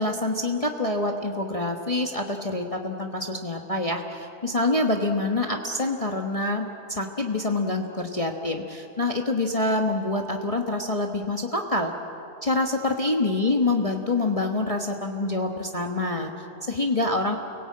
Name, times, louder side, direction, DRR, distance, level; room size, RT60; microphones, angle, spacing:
voice 1, 0.0-11.9 12.4-17.4, left 2 dB, 25° left, 2 dB, 1.2 m, -26 dB
29.5 x 18.0 x 8.6 m, 2.8 s
omnidirectional pair, 1.6 m